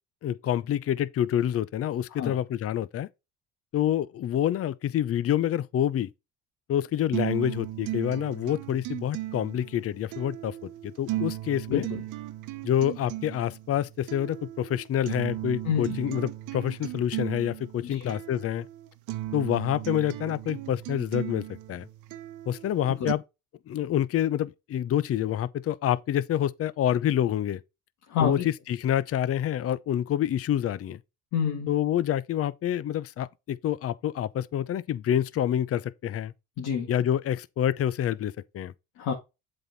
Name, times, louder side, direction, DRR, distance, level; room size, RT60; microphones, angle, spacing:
voice 1, 0.2-3.1 3.7-6.1 6.7-11.9 12.6-18.7 19.3-21.9 22.5-23.2 23.7-27.6 28.2-31.0 31.7-36.3 36.9-38.7, left 11 dB, 50° left, 0.6 m, -27 dB
sound 1, 7.1-23.1, right 15 dB, 80° right, 0.9 m, -36 dB
voice 2, 11.7-12.0 15.6-16.0 17.8-18.1 23.0-23.1 28.1-28.5 31.3-31.7 36.6-36.9 39.0-39.1, left 7 dB, 75° left, 2.1 m, -28 dB
7.8 x 4.3 x 4.0 m
supercardioid pair, 80°, 31 cm